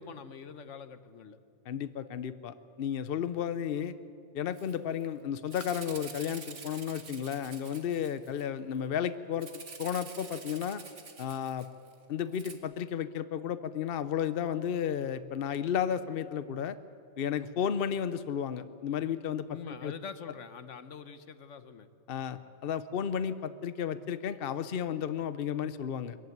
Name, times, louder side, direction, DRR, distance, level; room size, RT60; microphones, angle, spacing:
voice 1, 0.0-1.4 19.5-21.9, left 6 dB, 85° left, 11 dB, 1.3 m, -45 dB
voice 2, 1.7-3.9 4.3-9.5 9.8-10.8 11.2-11.7 12.1-16.8 17.2-19.9 22.1-26.2, left 8 dB, 55° left, 12 dB, 0.9 m, -33 dB
Rattle (instrument), 4.5-4.7 5.0-5.1 5.5-8.4 9.4-11.9 12.3-12.5, right 4 dB, 80° right, 2.0 m, -47 dB
23.0 x 14.5 x 9.4 m, 2.4 s
omnidirectional pair, 1.2 m